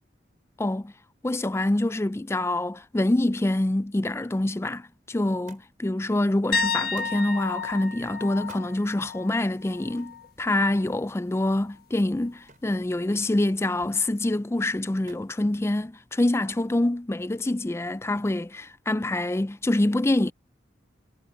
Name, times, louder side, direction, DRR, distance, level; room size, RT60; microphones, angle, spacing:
voice 1, 0.6-0.9 1.2-20.3, left 1 dB, 15° left, 0.4 m, -26 dB
Thump thud, 5.5-5.9 7.0-7.3 8.4-8.7 10.0-10.2 12.5-12.8 13.2-13.7 15.1-15.3 16.5-16.8 17.7-18.2 19.2-19.3, right 4 dB, 45° right, 4.7 m, -53 dB
sound 1, 6.5-10.3 10.6-10.9 13.8-13.9, left 4 dB, 55° left, 1.4 m, -32 dB
head